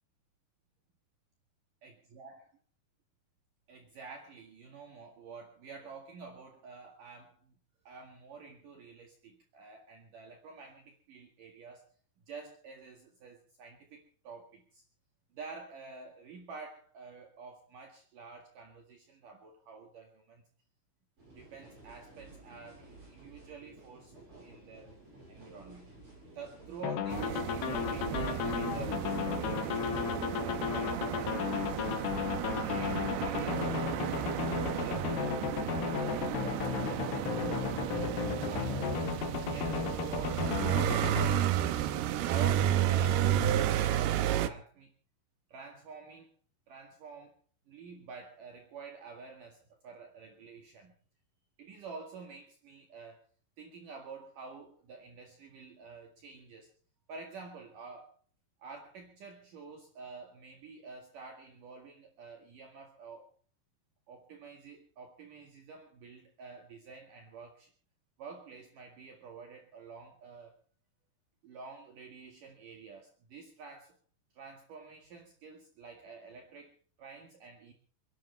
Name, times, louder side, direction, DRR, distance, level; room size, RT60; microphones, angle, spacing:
voice 1, 1.8-2.5 3.7-7.5 7.8-11.8 12.3-14.8 15.3-20.4 21.3-24.9 25.3-25.9 26.3-32.0 32.4-39.0 39.4-41.7 42.3-44.9 45.5-46.3 46.7-47.4 47.7-50.9 51.6-53.2 53.6-56.7 57.1-58.1 58.6-63.3 64.1-67.7 68.2-70.5 71.4-73.9 74.3-77.7, right 4 dB, 60° right, 2 dB, 3.4 m, -49 dB
sound 1, 21.2-34.7, right 2 dB, 35° right, 7.3 m, -56 dB
sound 2, 26.8-41.3, left 8 dB, 90° left, 3.7 m, -35 dB
sound 3, 27.1-44.5, right 11 dB, 85° right, 3.0 m, -32 dB
29.5 x 11.5 x 3.4 m, 0.43 s
omnidirectional pair, 4.7 m